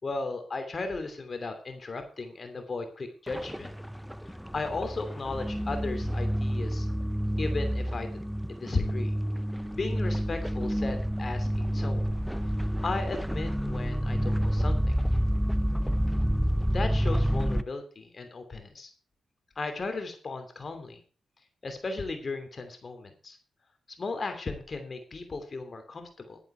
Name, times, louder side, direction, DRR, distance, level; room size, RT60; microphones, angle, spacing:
voice 1, 0.0-3.7 4.2-6.9 7.4-8.2 8.5-9.1 9.7-12.1 12.8-15.0 16.7-18.9 19.6-21.0 21.6-23.4 24.0-26.4, left 3 dB, 45° left, 7 dB, 2.8 m, -35 dB
sound 1, 3.3-17.6, equal, ahead, 0.8 m, -29 dB
11.5 x 11.0 x 4.6 m, 0.36 s
cardioid pair, 60°, 0 cm